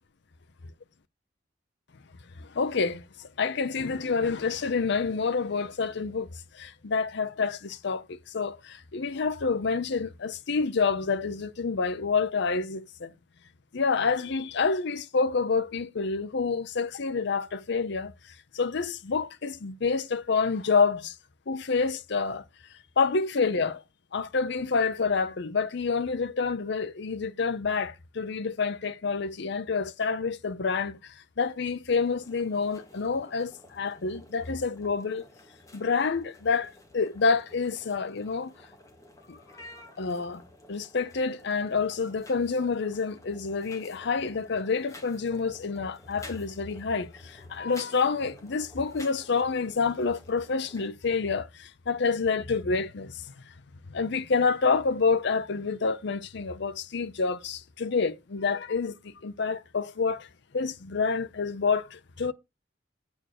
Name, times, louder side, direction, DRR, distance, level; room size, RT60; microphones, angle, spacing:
voice 1, 2.4-6.3 6.5-13.1 13.7-21.2 21.5-22.4 23.0-23.8 24.1-35.2 35.7-38.5 39.3-39.4 40.0-40.4 40.7-53.5 53.9-60.3 60.5-62.3, left 4 dB, 65° left, 0.6 m, -28 dB
sound 1, 31.9-50.9, left 1 dB, 15° left, 2.2 m, -52 dB
8.8 x 4.4 x 6.6 m
head